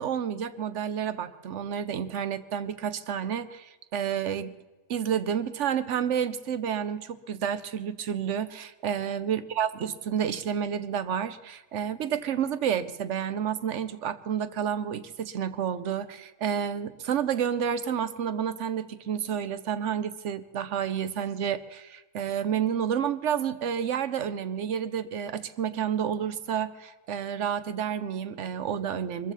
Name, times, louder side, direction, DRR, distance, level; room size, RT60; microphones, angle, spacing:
voice 1, 0.0-4.6 4.9-29.3, right 8 dB, 65° right, 13 dB, 1.0 m, -30 dB
23.0 x 14.5 x 4.1 m, 1.2 s
omnidirectional pair, 1.4 m